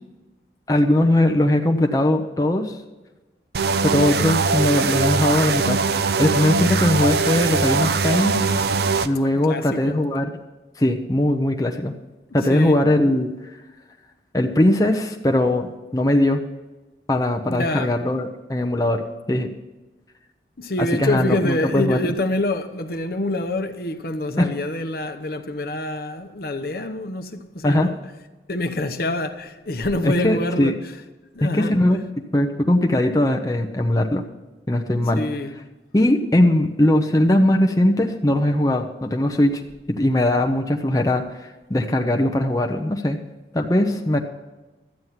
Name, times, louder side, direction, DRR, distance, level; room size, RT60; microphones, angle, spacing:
voice 1, 0.7-2.8 3.8-5.8 6.2-8.4 9.0-10.3 10.8-11.9 12.3-13.6 14.3-16.4 17.1-19.0 19.3-19.5 20.8-22.1 24.4-24.5 27.6-27.9 30.0-30.8 31.4-32.0 32.3-34.2 34.7-35.3 35.9-39.6 39.9-43.2 43.5-44.2, left 1 dB, 20° left, 0.7 m, -20 dB
sound 1, 3.5-9.1, right 4 dB, 60° right, 0.5 m, -21 dB
voice 2, 9.3-10.0 12.5-12.8 17.5-17.9 20.6-27.9 28.5-30.7 31.3-31.7 35.1-35.5, left 1 dB, 55° left, 0.9 m, -26 dB
12.5 x 9.4 x 5.7 m
head